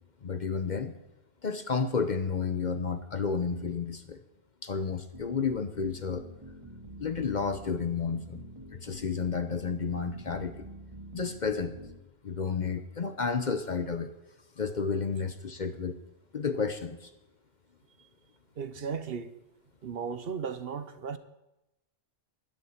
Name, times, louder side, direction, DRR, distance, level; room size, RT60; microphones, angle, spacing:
voice 1, 0.2-0.9 1.4-4.2 4.6-6.3 7.0-8.4 8.7-10.7 11.1-11.8 12.2-14.1 14.6-16.0 16.3-17.1, left 5 dB, 45° left, 0.8 m, -31 dB
sound 1, 5.1-12.0, right 1 dB, 25° right, 2.0 m, -47 dB
voice 2, 18.6-19.4 19.8-21.2, right 6 dB, 55° right, 0.9 m, -35 dB
11.0 x 8.9 x 8.6 m
omnidirectional pair, 1.2 m